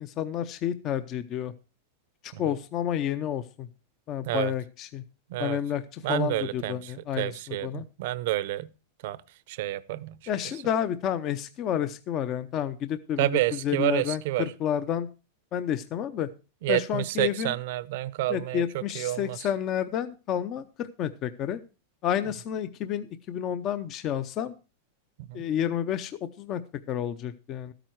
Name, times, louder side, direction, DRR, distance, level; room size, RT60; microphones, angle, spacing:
voice 1, 0.0-1.5 2.2-3.7 4.1-5.0 5.4-7.9 10.3-15.1 15.5-16.3 16.7-17.5 18.3-21.6 22.0-24.5 25.3-26.1 26.4-26.6 26.9-27.7, left 9 dB, 30° left, 0.6 m, -30 dB
voice 2, 4.2-4.5 5.3-5.6 6.0-8.7 9.0-9.2 9.5-10.2 13.2-14.5 16.6-19.5 25.2-25.4, right 16 dB, 60° right, 0.7 m, -29 dB
13.0 x 9.0 x 4.6 m
supercardioid pair, 155°, 0 cm